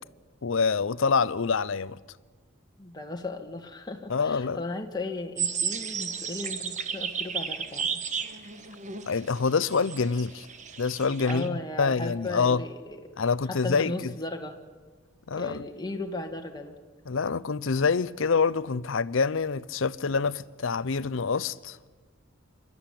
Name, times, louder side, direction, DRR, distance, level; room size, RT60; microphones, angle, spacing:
voice 1, 0.4-2.0 4.1-4.6 9.1-10.5 10.8-12.6 13.2-14.1 15.3-15.6 17.1-21.8, left 5 dB, 65° left, 0.6 m, -26 dB
voice 2, 2.8-8.0 11.2-13.0 13.5-14.6 15.3-16.7, left 2 dB, 20° left, 1.6 m, -36 dB
sound 1, 5.4-11.5, right 6 dB, 35° right, 1.2 m, -33 dB
27.0 x 12.5 x 9.9 m
head